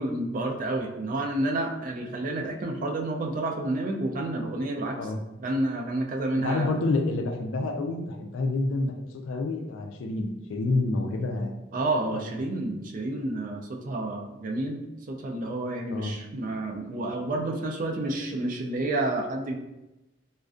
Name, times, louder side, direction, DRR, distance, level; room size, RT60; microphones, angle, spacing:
voice 1, 0.0-5.0 5.4-6.7 11.7-14.8 15.1-19.6, right 2 dB, 45° right, 2 dB, 0.3 m, -29 dB
voice 2, 6.4-11.6 15.9-16.1, left 2 dB, 80° left, 4 dB, 0.3 m, -28 dB
2.4 x 2.1 x 2.4 m, 0.96 s
head